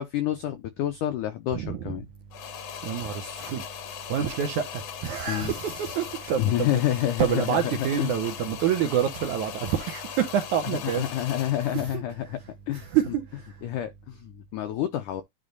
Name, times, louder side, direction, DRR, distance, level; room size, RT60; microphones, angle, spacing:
voice 1, 0.0-2.1 5.3-5.5 6.4-7.6 8.0-8.1 11.0-12.4 12.7-12.9 13.6-15.2, left 12 dB, 85° left, 1.8 m, -28 dB
voice 2, 1.5-2.0 2.8-3.6 4.1-12.4 12.7-13.5, right 9 dB, 70° right, 1.8 m, -28 dB
sound 1, 2.3-11.9, left 9 dB, 70° left, 1.6 m, -39 dB
10.5 x 3.8 x 3.8 m
omnidirectional pair, 4.5 m